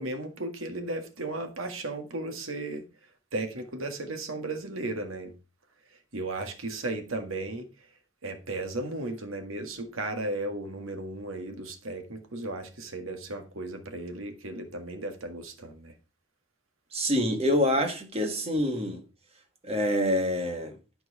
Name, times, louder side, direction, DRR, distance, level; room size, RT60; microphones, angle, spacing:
voice 1, 0.0-2.8 3.3-5.3 6.1-7.7 8.2-15.9, right 2 dB, 85° right, 1.8 m, -35 dB
voice 2, 16.9-19.0 19.6-20.8, equal, 30° right, 1.5 m, -26 dB
12.0 x 4.6 x 4.8 m
head